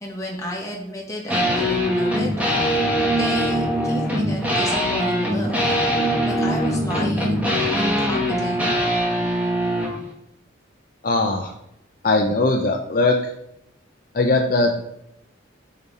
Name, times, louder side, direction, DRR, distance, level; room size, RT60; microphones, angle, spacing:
voice 1, 0.0-2.3 2.6-5.5 6.2-8.7, equal, 15° left, -3 dB, 1.4 m, -32 dB
sound 1, 1.3-10.0, equal, 10° right, 1.1 m, -22 dB
voice 2, 11.0-11.5 12.0-13.3 14.1-14.8, left 2 dB, 45° left, 1 dB, 0.6 m, -20 dB
5.4 x 5.1 x 4.1 m, 0.80 s
head